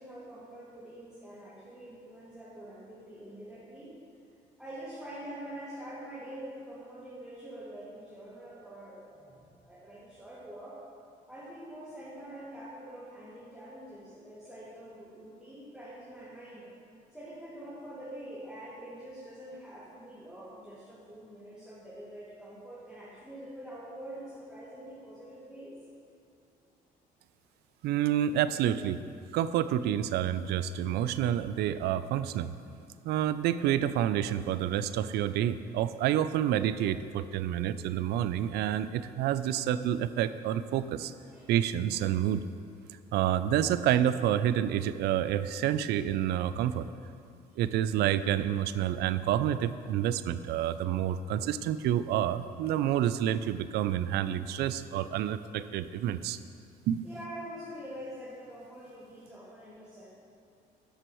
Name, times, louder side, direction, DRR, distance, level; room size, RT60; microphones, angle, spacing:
voice 1, 0.0-3.9 4.6-10.8 11.3-16.7 17.1-25.7 34.7-34.9 41.3-41.5 57.0-60.1, right 1 dB, 5° right, -10 dB, 2.2 m, -45 dB
voice 2, 27.8-29.0 29.3-32.5 33.0-41.1 41.5-42.4 43.1-46.9 47.6-56.4 56.9-57.0, right 11 dB, 75° right, 14 dB, 0.4 m, -28 dB
13.0 x 7.8 x 3.1 m, 2.4 s
cardioid pair, 110°, 17 cm